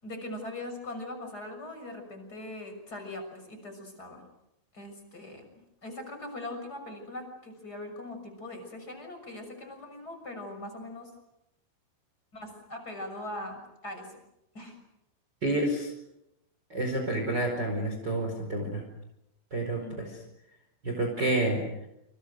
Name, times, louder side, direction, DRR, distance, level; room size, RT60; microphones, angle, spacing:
voice 1, 0.0-4.2 4.7-5.5 5.8-11.1 12.3-14.1 14.5-14.8 19.8-20.1, left 1 dB, 20° left, 5 dB, 6.6 m, -41 dB
voice 2, 15.4-15.9 16.7-18.8 19.5-20.2 20.8-21.7, right 1 dB, 20° right, 3 dB, 4.8 m, -29 dB
29.0 x 27.5 x 6.5 m, 0.84 s
omnidirectional pair, 5.7 m